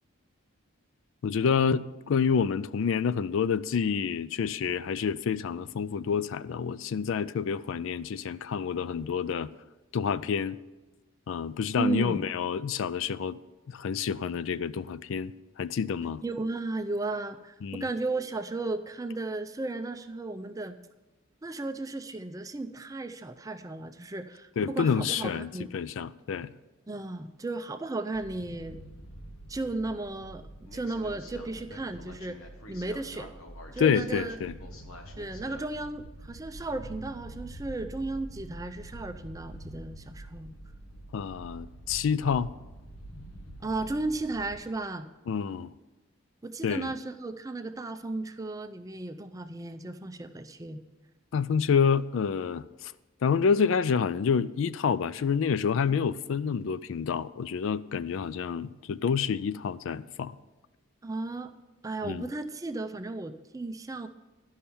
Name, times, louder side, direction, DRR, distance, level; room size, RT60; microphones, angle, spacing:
voice 1, 1.2-9.5 9.9-10.6 11.3-13.4 13.7-16.2 17.6-17.9 24.6-26.5 33.8-34.5 41.1-42.5 45.3-45.7 46.6-46.9 51.3-52.9 53.2-60.3 62.0-62.3, left 6 dB, 70° left, 0.3 m, -28 dB
voice 2, 11.8-12.2 16.2-20.8 21.4-25.7 26.9-28.8 29.5-30.4 30.7-32.4 32.7-33.3 33.7-34.4 35.2-40.5 43.6-45.1 46.4-50.8 61.0-61.5 61.8-64.1, right 2 dB, 15° right, 0.4 m, -34 dB
sound 1, 28.1-44.6, right 1 dB, 85° left, 1.2 m, -46 dB
12.0 x 5.6 x 7.0 m
head